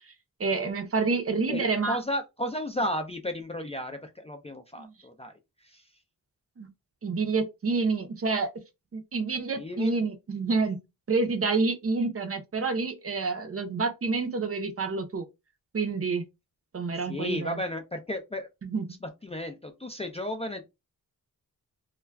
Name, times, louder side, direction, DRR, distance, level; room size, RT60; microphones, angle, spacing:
voice 1, 0.4-2.0 4.8-4.9 6.6-6.7 7.0-8.5 8.9-10.8 11.1-15.2 15.7-16.2 16.7-17.6 18.6-18.8, right 4 dB, 40° right, 0.6 m, -28 dB
voice 2, 1.5-5.9 9.6-9.9 16.9-18.5 19.0-20.6, left 1 dB, 20° left, 0.3 m, -34 dB
2.3 x 2.1 x 3.2 m
wide cardioid pair, 90°, 36 cm